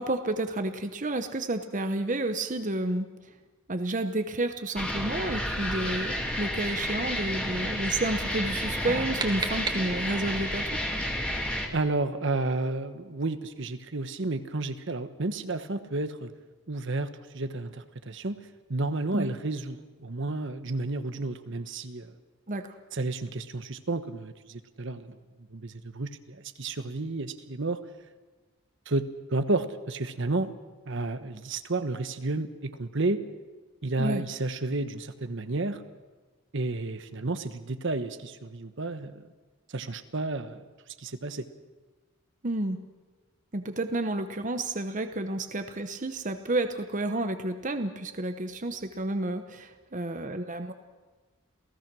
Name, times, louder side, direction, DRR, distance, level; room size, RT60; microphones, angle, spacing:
voice 1, 0.0-3.1 3.7-10.8 19.1-19.3 22.5-22.8 34.0-34.2 42.4-42.8 43.5-50.7, right 2 dB, 35° right, 8 dB, 0.9 m, -30 dB
sound 1, 4.8-11.7, left 1 dB, 5° left, 2.4 m, -31 dB
sound 2, 8.7-10.4, right 4 dB, 20° right, 1.7 m, -36 dB
voice 2, 11.7-16.3 16.7-18.4 18.7-22.1 22.9-25.2 25.5-27.8 28.9-30.5 30.9-33.2 33.8-35.8 36.5-39.3 39.7-40.6 41.0-41.5, right 2 dB, 55° right, 10 dB, 1.1 m, -31 dB
28.0 x 17.0 x 6.2 m, 1.3 s
head